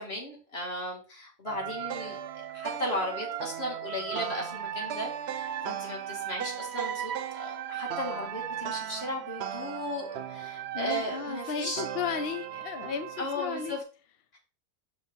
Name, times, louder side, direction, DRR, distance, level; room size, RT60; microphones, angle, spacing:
voice 1, 0.0-2.2 2.5-7.1 7.4-11.8 13.2-13.8 14.3-14.4, left 1 dB, 40° left, 2.7 m, -36 dB
sound 1, 1.5-13.8, right 9 dB, 60° right, 0.7 m, -36 dB
voice 2, 10.7-13.8, left 7 dB, 60° left, 0.6 m, -34 dB
6.3 x 4.8 x 5.4 m
omnidirectional pair, 1.6 m